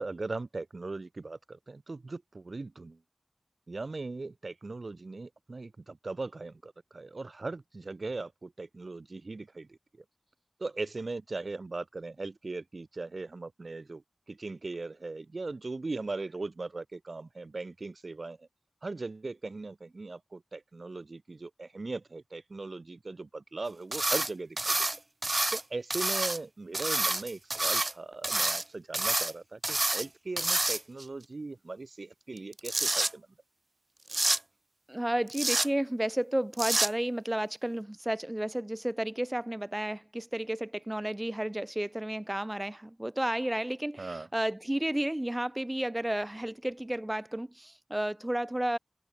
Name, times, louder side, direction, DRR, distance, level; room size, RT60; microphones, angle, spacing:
voice 1, 0.0-3.0 3.7-9.8 10.6-14.0 14.3-18.5 18.8-24.8 25.5-33.3 44.0-44.3, right 3 dB, 75° right, 1.0 m, -39 dB
sound 1, 23.9-24.3 24.6-25.6 25.9-26.4 26.7-27.9 28.2-28.6 28.9-29.3 29.6-30.1 30.4-31.0 32.4-33.1 34.1-34.4 35.3-35.7 36.5-36.9, right 2 dB, 50° right, 1.0 m, -28 dB
voice 2, 34.9-48.8, right 1 dB, 20° right, 2.6 m, -32 dB
open air
wide cardioid pair, 45°, 0 cm